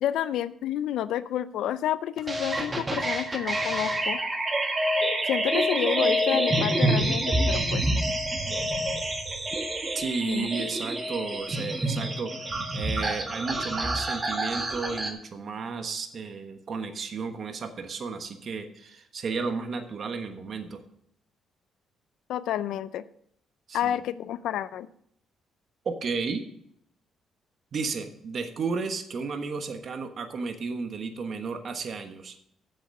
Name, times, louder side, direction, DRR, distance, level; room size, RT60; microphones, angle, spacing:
voice 1, 0.0-4.2 5.3-7.8 10.2-10.5 22.3-23.1 23.7-24.9, left 11 dB, 80° left, 15 dB, 0.4 m, -29 dB
sound 1, 2.3-15.1, right 1 dB, 25° right, 1.6 m, -27 dB
voice 2, 9.9-20.8 23.7-23.9 25.8-26.5 27.7-32.3, right 4 dB, 50° right, 7 dB, 1.2 m, -33 dB
7.9 x 7.6 x 6.4 m, 0.70 s
cardioid pair, 90°, 0 cm